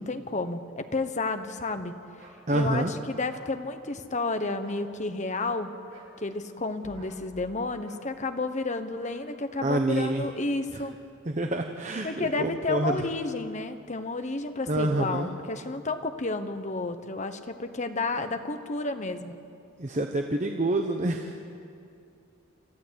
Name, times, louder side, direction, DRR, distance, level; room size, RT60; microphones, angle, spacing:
voice 1, 0.0-1.9 2.5-5.7 6.2-10.9 12.0-19.4, left 3 dB, 35° left, 8 dB, 1.1 m, -31 dB
sound 1, 2.2-2.4 3.3-3.5 4.5-4.8 5.9-6.1 6.9-7.2 7.8-8.0 9.0-9.2 9.5-9.7 10.0-10.2, right 2 dB, 90° right, 7.4 m, -53 dB
voice 2, 2.5-2.9 9.6-10.2 11.3-13.0 14.7-15.3 19.8-21.4, right 1 dB, 35° right, 4 dB, 1.0 m, -27 dB
sound 2, 6.8-7.8, equal, 20° left, 5.0 m, -50 dB
28.0 x 14.0 x 8.3 m, 2.6 s
head